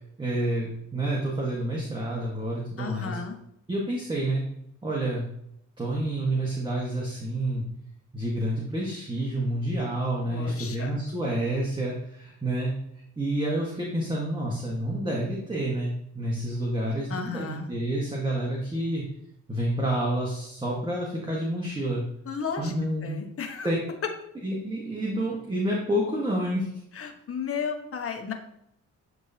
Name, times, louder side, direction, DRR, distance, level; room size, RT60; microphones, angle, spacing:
voice 1, 0.2-3.2 3.7-4.4 4.8-5.3 5.8-7.6 8.1-12.7 13.2-19.0 19.5-22.0 22.6-23.1 23.6-23.8 24.4-26.7, right 1 dB, 15° right, -4 dB, 1.5 m, -29 dB
voice 2, 2.8-3.4 10.3-10.9 17.1-17.7 22.2-22.7 23.0-23.7 26.9-28.3, left 6 dB, 50° left, 5 dB, 1.2 m, -34 dB
10.5 x 3.7 x 2.8 m, 0.76 s
cardioid pair, 90°, 30 cm